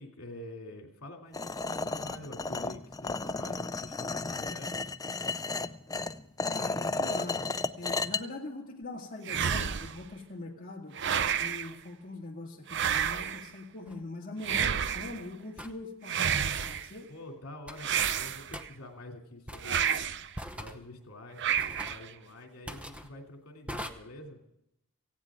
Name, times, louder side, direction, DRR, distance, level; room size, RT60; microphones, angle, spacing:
voice 1, 0.0-4.7 17.1-20.1 20.6-24.4, left 1 dB, 70° left, 2 dB, 2.9 m, -47 dB
sound 1, 1.3-8.2, left 3 dB, 15° left, 0.4 m, -33 dB
voice 2, 6.5-7.5 7.8-17.1, left 2 dB, 40° left, -3 dB, 2.2 m, -42 dB
sound 2, 9.2-10.0 10.9-11.7 12.7-13.5 14.4-15.2 16.0-16.9 17.8-18.7 19.6-20.3 21.4-22.1, right 8 dB, 55° right, 0.6 m, -30 dB
sound 3, 13.9-14.0 15.6-15.8 16.6-16.8 17.7-18.0 18.5-18.7 19.5-19.9 20.3-20.8 21.6-22.0 22.7-23.1 23.7-23.9, equal, 5° right, 0.8 m, -42 dB
18.0 x 16.0 x 3.7 m, 0.81 s
head